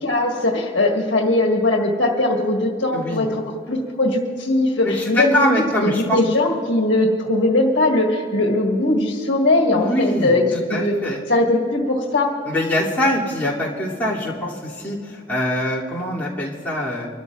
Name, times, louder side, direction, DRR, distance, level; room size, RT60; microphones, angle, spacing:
voice 1, 0.0-10.4 10.7-10.9 11.3-12.3, left 2 dB, 65° left, 0 dB, 1.7 m, -20 dB
voice 2, 2.9-3.3 4.8-6.2 9.7-11.2 12.4-17.1, left 1 dB, 10° left, -8 dB, 2.8 m, -23 dB
25.5 x 13.0 x 2.5 m, 2.2 s
head